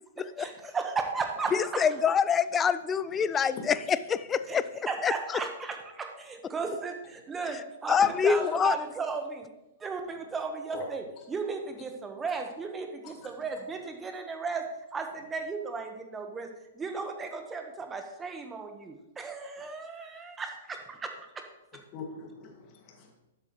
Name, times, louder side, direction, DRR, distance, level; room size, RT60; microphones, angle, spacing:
voice 1, 0.4-1.9 4.5-4.6 4.9-9.5 9.8-14.7 14.9-16.5 16.7-21.4, right 4 dB, 15° right, 5 dB, 1.3 m, -35 dB
voice 2, 1.5-4.6 5.0-5.1 7.9-8.7, left 7 dB, 20° left, 14 dB, 0.4 m, -25 dB
voice 3, 21.7-23.1, left 4 dB, 40° left, 1 dB, 2.2 m, -43 dB
12.0 x 7.9 x 3.2 m, 0.96 s
figure-of-eight pair, 110°, 0 cm